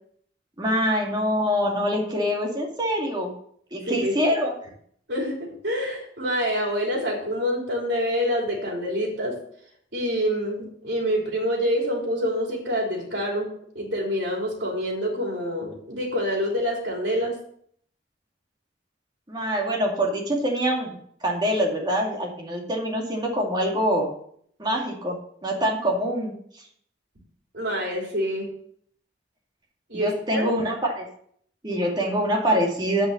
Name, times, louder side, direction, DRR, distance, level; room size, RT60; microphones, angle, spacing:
voice 1, 0.6-3.3 3.7-4.6 19.3-20.9 21.2-24.1 24.6-25.2 25.4-26.3 29.9-31.1 31.6-33.1, equal, 25° right, -1 dB, 2.3 m, -24 dB
voice 2, 5.1-9.4 9.9-13.5 13.7-17.3 27.5-28.5 29.9-30.5, equal, 65° right, -2 dB, 3.3 m, -26 dB
9.5 x 5.6 x 6.6 m, 0.64 s
head